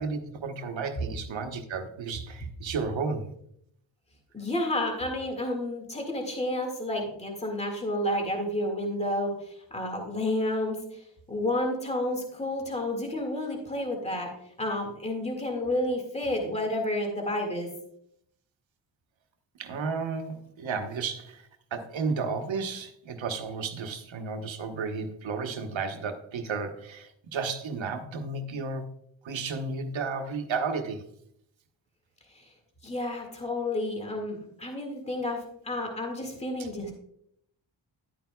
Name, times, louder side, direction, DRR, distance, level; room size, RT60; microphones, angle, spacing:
voice 1, 0.0-3.3 19.6-21.4 21.7-28.8 29.2-31.1 36.6-36.7, right 4 dB, 80° right, 6 dB, 1.1 m, -33 dB
voice 2, 4.3-11.0 11.3-14.3 14.6-17.7 32.8-36.9, left 1 dB, 15° left, 2 dB, 1.9 m, -30 dB
11.0 x 9.2 x 2.3 m, 0.71 s
cardioid pair, 100°, 45 cm